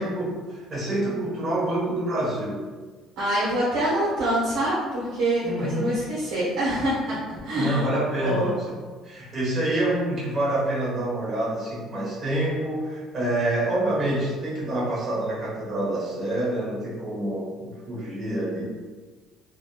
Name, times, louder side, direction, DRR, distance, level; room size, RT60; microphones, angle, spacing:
voice 1, 0.0-2.7 5.4-5.9 7.5-8.7 9.0-18.6, right 1 dB, 30° right, -8 dB, 1.3 m, -27 dB
voice 2, 3.2-7.1 7.4-7.9 8.2-8.5, right 1 dB, 85° right, -9 dB, 1.2 m, -25 dB
3.5 x 2.6 x 2.3 m, 1.4 s
cardioid pair, 160°, 0 cm